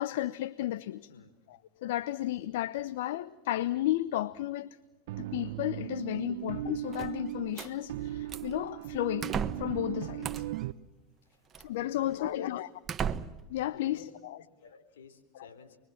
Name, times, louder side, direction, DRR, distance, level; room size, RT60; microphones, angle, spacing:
voice 1, 0.0-1.1 1.5-4.8 5.2-10.4 11.6-12.7 13.1-13.2 13.5-14.4 15.3-15.5, left 14 dB, 75° left, 0.8 m, -33 dB
sound 1, 5.1-10.7, right 14 dB, 70° right, 1.0 m, -38 dB
sound 2, 6.9-7.7 8.3-8.6 9.2-9.8 10.2-10.6 11.5-11.7 12.3-12.4 12.9-13.5, right 7 dB, 30° right, 1.3 m, -35 dB
voice 2, 11.7-12.6 13.4-15.8, left 5 dB, 90° left, 4.0 m, -51 dB
29.5 x 22.5 x 7.2 m
hypercardioid pair, 105°, 0 cm